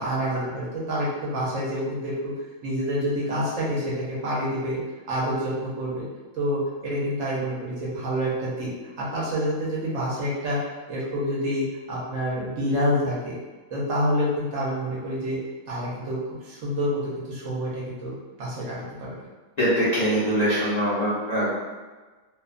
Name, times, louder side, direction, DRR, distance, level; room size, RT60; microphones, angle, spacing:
voice 1, 0.0-2.3 2.6-4.8 5.1-6.0 6.3-8.7 9.0-10.6 10.9-13.4 13.7-15.4 15.7-18.1 18.4-19.1, equal, 70° right, -6 dB, 1.1 m, -27 dB
voice 2, 19.6-21.5, equal, 45° left, -11 dB, 0.6 m, -23 dB
2.7 x 2.1 x 2.4 m, 1.3 s
omnidirectional pair, 1.4 m